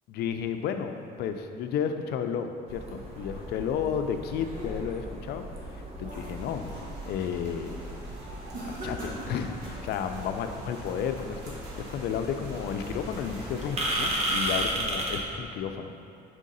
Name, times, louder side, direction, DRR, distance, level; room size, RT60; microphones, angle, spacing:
voice 1, 0.1-5.4 5.7-7.7 8.6-16.0, left 7 dB, 75° left, 7 dB, 0.5 m, -32 dB
sound 1, 2.7-15.2, right 1 dB, 35° right, 1.0 m, -35 dB
sound 2, 4.1-5.1 5.6-6.9 7.3-7.7 8.5-9.9, right 1 dB, 55° right, 1.4 m, -42 dB
sound 3, 6.3-14.5, right 1 dB, 75° right, 1.4 m, -47 dB
4.9 x 3.7 x 5.4 m, 2.7 s
cardioid pair, 110°, 17 cm